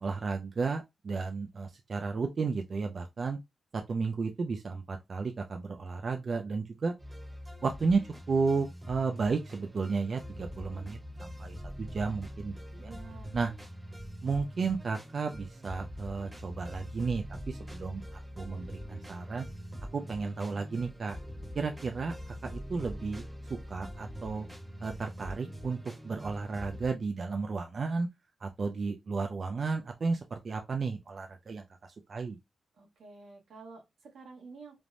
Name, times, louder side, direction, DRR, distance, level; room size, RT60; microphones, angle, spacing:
voice 1, 0.0-3.4 3.7-6.9 7.6-8.0 8.3-12.9 13.3-13.5 14.2-18.0 18.4-19.5 19.9-21.2 21.5-23.2 23.5-24.5 24.8-25.8 26.0-28.1 28.4-31.6 32.1-32.4, right 4 dB, 40° right, 0.3 m, -33 dB
sound 1, 7.0-26.9, equal, 20° right, 0.8 m, -44 dB
voice 2, 12.8-13.4 32.7-34.8, right 4 dB, 85° right, 1.1 m, -50 dB
3.2 x 2.1 x 2.5 m
wide cardioid pair, 165°, 0 cm